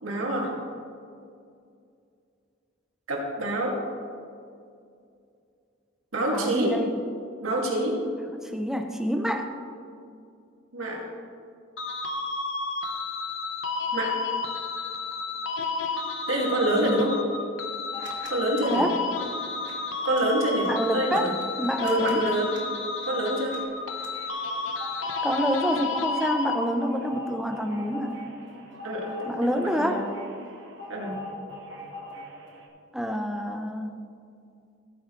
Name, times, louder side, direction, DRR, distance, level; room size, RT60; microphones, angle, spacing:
voice 1, 0.0-0.5 3.1-3.7 6.1-6.7 7.4-8.0 10.7-11.0 13.9-14.1 16.3-17.1 18.3-18.8 20.0-21.3 21.8-22.5 23.1-23.6 28.8-30.1 30.9-31.1, right 1 dB, 80° right, -1 dB, 2.3 m, -26 dB
voice 2, 6.3-6.9 8.3-9.5 16.7-17.1 18.7-19.0 20.6-22.2 25.2-28.2 29.3-30.0 32.9-33.9, equal, ahead, 4 dB, 0.6 m, -28 dB
sound 1, 11.8-27.0, left 4 dB, 70° left, 1.0 m, -31 dB
sound 2, 17.9-18.3 18.6-32.7, left 1 dB, 60° right, 1.8 m, -42 dB
17.0 x 9.2 x 3.2 m, 2.4 s
head